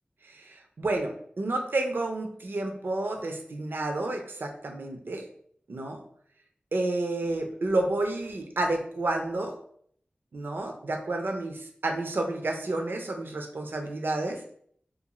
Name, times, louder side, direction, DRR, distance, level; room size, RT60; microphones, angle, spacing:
voice 1, 0.2-5.2 5.7-6.0 6.7-9.5 10.3-14.4, right 2 dB, 75° right, 3 dB, 0.4 m, -30 dB
2.5 x 2.3 x 2.9 m, 0.63 s
wide cardioid pair, 60°, 4 cm